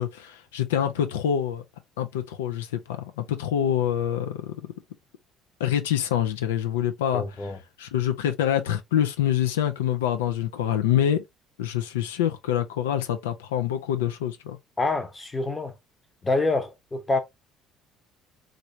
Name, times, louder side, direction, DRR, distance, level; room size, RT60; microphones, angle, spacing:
voice 1, 0.0-1.6 2.0-4.7 5.6-11.2 11.6-14.6, left 10 dB, 85° left, 0.4 m, -26 dB
voice 2, 7.1-7.6 14.8-15.7 16.2-17.2, left 2 dB, 25° left, 0.8 m, -26 dB
3.2 x 2.6 x 2.8 m
hypercardioid pair, 60°, 0 cm